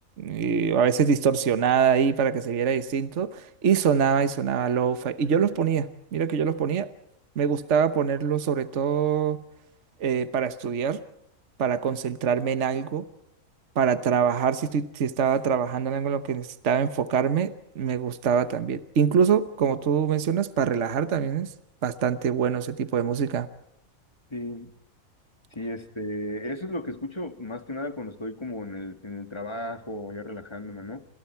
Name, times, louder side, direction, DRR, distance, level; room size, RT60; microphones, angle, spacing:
voice 1, 0.2-5.9 6.1-6.9 7.4-9.4 10.0-11.0 11.6-13.1 13.8-21.5 21.8-23.5, right 7 dB, 60° right, 11 dB, 1.4 m, -24 dB
voice 2, 24.3-24.7 25.5-31.1, left 1 dB, 20° left, 8 dB, 1.8 m, -35 dB
29.0 x 26.0 x 4.5 m, 0.78 s
omnidirectional pair, 1.4 m